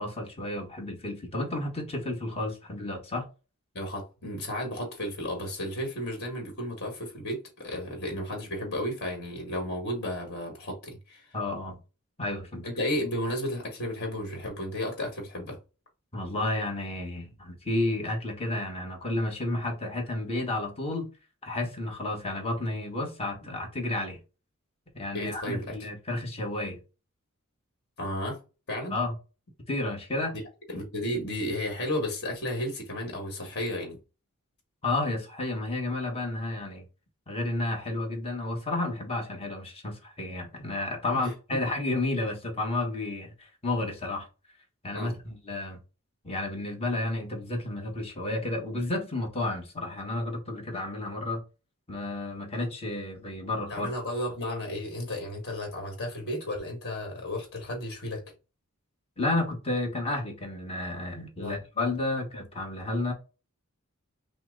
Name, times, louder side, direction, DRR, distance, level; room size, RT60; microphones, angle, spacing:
voice 1, 0.0-3.3 11.3-11.8 12.2-12.6 16.1-21.1 21.4-24.2 24.9-26.8 28.9-29.1 29.7-30.3 34.8-36.8 37.3-44.3 44.8-45.8 46.2-51.4 51.9-53.9 59.2-63.1, left 2 dB, 25° left, 1.2 m, -31 dB
voice 2, 3.7-11.3 12.6-15.6 25.1-25.9 28.0-28.4 28.7-29.0 30.7-34.0 41.1-41.6 44.9-45.1 53.7-58.2 61.4-61.6, left 1 dB, 50° left, 1.6 m, -33 dB
5.7 x 2.1 x 3.8 m
head